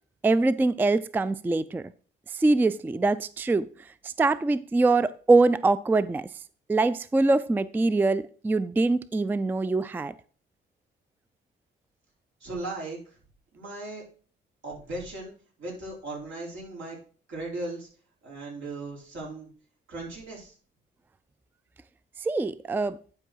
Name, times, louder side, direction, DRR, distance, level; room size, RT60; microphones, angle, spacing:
voice 1, 0.2-1.9 2.3-3.7 4.0-6.3 6.7-10.1 22.2-23.0, right 3 dB, 10° right, 0.3 m, -23 dB
voice 2, 12.4-13.0 13.5-14.0 14.6-15.3 15.6-17.0 17.3-17.9 18.2-19.5 19.9-20.5, right 2 dB, 75° right, 4.1 m, -37 dB
10.5 x 4.7 x 4.6 m
cardioid pair, 90°, 20 cm